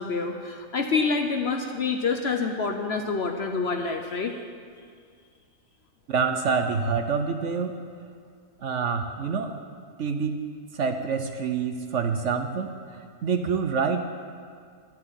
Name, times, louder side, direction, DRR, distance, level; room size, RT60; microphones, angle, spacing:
voice 1, 0.0-4.4, left 4 dB, 50° left, 4 dB, 0.8 m, -27 dB
voice 2, 6.1-7.8 8.6-9.5 10.0-10.4 10.7-14.0, right 5 dB, 60° right, 6 dB, 0.9 m, -27 dB
11.5 x 7.7 x 9.0 m, 2.1 s
omnidirectional pair, 1.6 m